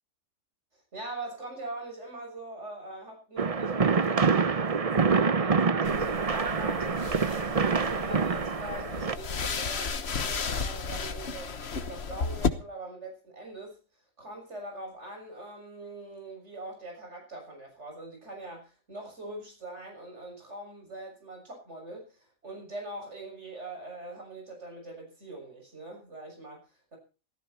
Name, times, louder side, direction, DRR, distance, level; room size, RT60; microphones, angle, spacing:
voice 1, 0.7-4.6 5.0-13.8 14.2-27.0, right 2 dB, 55° right, 1 dB, 7.0 m, -42 dB
sound 1, 3.4-9.2, right 5 dB, 35° right, 0.7 m, -26 dB
sound 2, 5.8-12.5, left 5 dB, 50° left, 1.4 m, -34 dB
16.0 x 14.5 x 4.3 m, 0.35 s
omnidirectional pair, 1.4 m